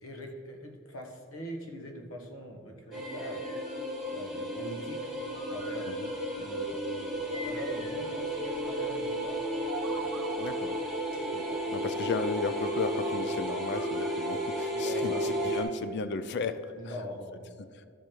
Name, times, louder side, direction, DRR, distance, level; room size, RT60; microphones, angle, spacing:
voice 1, 0.0-3.4 4.1-5.9 6.4-9.4 9.9-10.2 14.7-15.5 16.7-17.5, equal, 80° left, 3 dB, 1.2 m, -42 dB
sound 1, 2.9-4.5 5.1-6.7 7.3-8.9 9.6-10.8 11.9-14.7 15.1-16.9, left 1 dB, 35° left, 1.8 m, -50 dB
sound 2, 2.9-15.6, equal, ahead, 1.9 m, -33 dB
sound 3, 9.2-11.1, right 6 dB, 75° right, 0.6 m, -43 dB
voice 2, 10.4-10.8 11.3-16.6, left 4 dB, 55° left, 12 dB, 0.4 m, -35 dB
12.5 x 5.0 x 4.5 m, 2.2 s
head